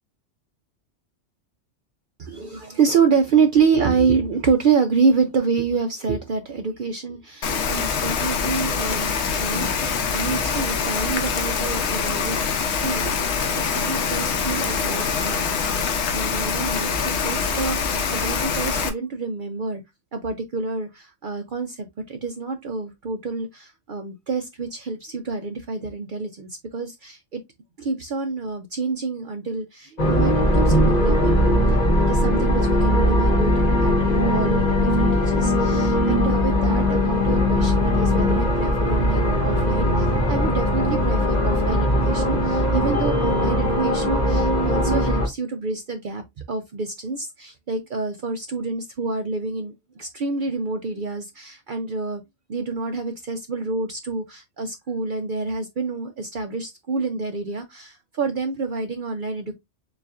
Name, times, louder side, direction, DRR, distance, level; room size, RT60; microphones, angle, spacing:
voice 1, 2.2-9.1 9.4-12.4 12.8-19.8 20.1-27.4 27.8-31.4 31.7-33.5 33.8-34.0 34.3-52.2 52.5-59.5, right 4 dB, 55° right, 0.6 m, -27 dB
Rain, 7.4-18.9, left 5 dB, 70° left, 1.0 m, -24 dB
sound 1, 30.0-45.3, left 1 dB, 40° left, 1.0 m, -20 dB
6.9 x 2.5 x 2.4 m
omnidirectional pair, 1.2 m